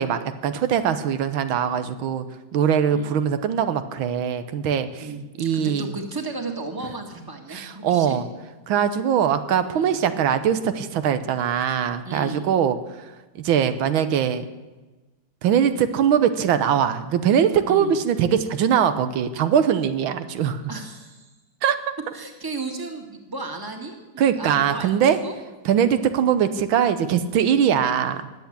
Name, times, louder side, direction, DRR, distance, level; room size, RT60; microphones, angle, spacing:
voice 1, 0.0-2.2 2.5-5.1 5.4-5.9 7.5-8.2 8.7-12.8 13.3-14.4 15.4-20.6 21.6-21.8 24.2-25.2 25.6-28.2, right 8 dB, 85° right, 10 dB, 1.7 m, -21 dB
voice 2, 5.0-8.2 9.7-10.0 12.0-12.5 17.6-17.9 20.7-21.3 22.1-25.4, right 3 dB, 10° right, 4 dB, 1.7 m, -34 dB
20.0 x 8.2 x 8.6 m, 1.2 s
omnidirectional pair, 2.2 m